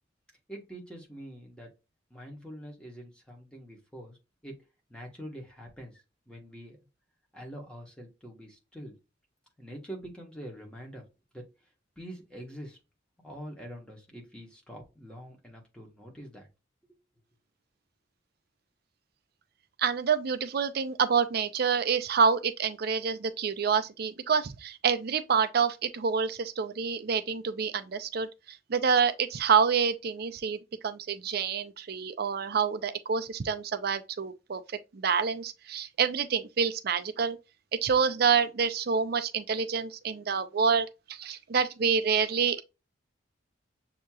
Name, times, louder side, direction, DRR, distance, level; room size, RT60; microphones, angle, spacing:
voice 1, 0.5-1.7 2.1-4.2 4.4-4.6 4.9-6.8 7.3-8.9 9.6-11.0 11.3-11.5 12.0-12.8 13.2-16.5 16.9-17.0, equal, 5° left, 1.3 m, -45 dB
voice 2, 19.8-37.4 37.8-42.6, right 6 dB, 55° right, 0.5 m, -27 dB
6.6 x 2.9 x 2.3 m
head